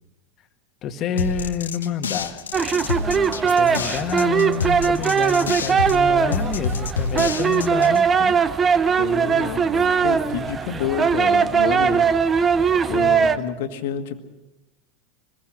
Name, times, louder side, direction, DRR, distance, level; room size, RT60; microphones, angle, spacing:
voice 1, 0.8-2.4 2.9-8.4 10.2-10.5 12.6-13.2, left 7 dB, 40° left, 8 dB, 1.8 m, -29 dB
sound 1, 1.2-8.0, left 4 dB, 75° left, 1.2 m, -28 dB
sound 2, 2.5-13.4, right 6 dB, 25° right, 1.0 m, -20 dB
voice 2, 9.0-12.2 12.9-14.2, left 8 dB, 60° left, 7 dB, 1.9 m, -29 dB
25.5 x 21.5 x 6.3 m, 1.0 s
figure-of-eight pair, 80°, 0 cm